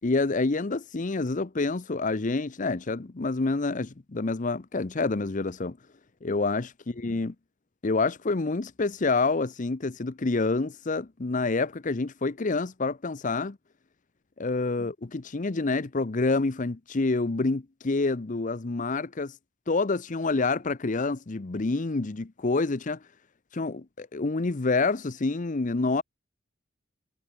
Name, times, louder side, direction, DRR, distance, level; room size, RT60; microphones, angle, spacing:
voice 1, 0.0-5.8 6.2-7.3 7.8-13.6 14.4-19.3 19.7-23.0 23.5-26.0, left 3 dB, 40° left, 0.7 m, -27 dB
head